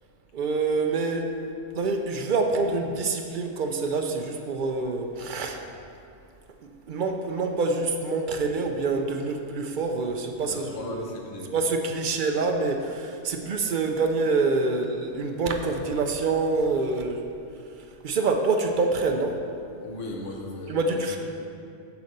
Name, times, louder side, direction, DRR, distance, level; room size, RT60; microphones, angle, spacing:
voice 1, 0.3-1.3 1.7-5.6 6.9-11.1 11.5-17.3 18.0-19.4 20.7-21.2, right 3 dB, 60° right, 4 dB, 0.5 m, -26 dB
voice 2, 10.5-11.5 19.8-21.2, left 2 dB, 75° left, 0 dB, 1.3 m, -37 dB
7.0 x 4.1 x 6.5 m, 2.5 s
omnidirectional pair, 1.3 m